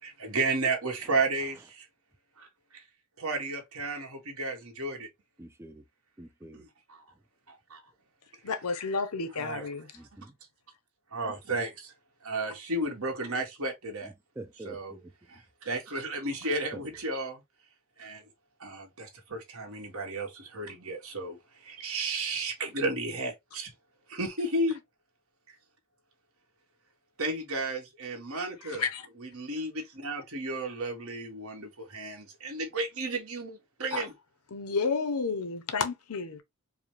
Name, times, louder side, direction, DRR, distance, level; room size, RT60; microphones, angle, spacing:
voice 1, 0.0-1.9 2.4-2.8 3.2-5.1 6.5-7.0 7.5-7.8 9.4-9.7 11.1-11.9 12.2-14.1 14.6-14.9 15.3-17.4 18.0-18.2 18.6-23.7 24.1-24.8 25.5-25.6 27.2-28.8 29.2-34.1, right 2 dB, 65° right, 1.6 m, -33 dB
voice 2, 5.4-5.8 6.2-6.6 10.0-10.3 14.0-15.1 16.7-16.8, right 2 dB, 10° right, 0.3 m, -46 dB
voice 3, 8.4-10.0 28.6-29.1 33.9-34.0 34.5-36.4, left 4 dB, 75° left, 0.8 m, -31 dB
4.8 x 2.2 x 3.2 m
head